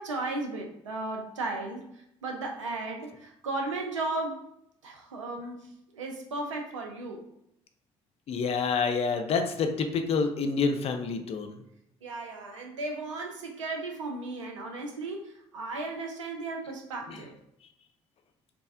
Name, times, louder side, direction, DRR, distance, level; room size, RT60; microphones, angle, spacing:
voice 1, 0.0-4.4 4.8-7.3 12.0-17.3, right 2 dB, 85° right, 2 dB, 0.4 m, -35 dB
voice 2, 8.3-11.5, left 5 dB, 40° left, 7 dB, 0.4 m, -27 dB
3.3 x 2.0 x 2.4 m, 0.77 s
figure-of-eight pair, 50°, 15 cm